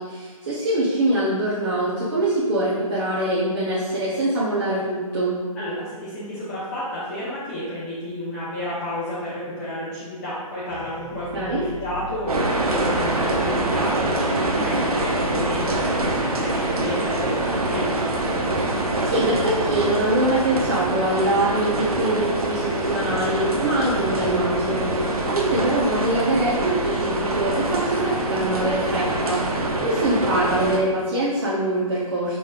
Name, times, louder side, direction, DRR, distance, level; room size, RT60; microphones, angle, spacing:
voice 1, 0.0-5.4 11.3-11.6 18.6-18.7 19.0-29.4 29.8-32.4, right 1 dB, 40° right, -9 dB, 0.8 m, -23 dB
voice 2, 5.5-17.9, equal, 25° left, -11 dB, 0.8 m, -31 dB
sound 1, 10.7-29.4, left 1 dB, 90° left, 1.1 m, -40 dB
sound 2, 12.3-30.8, right 2 dB, 85° right, 0.7 m, -25 dB
5.4 x 3.1 x 2.4 m, 1.4 s
hypercardioid pair, 155°, 19 cm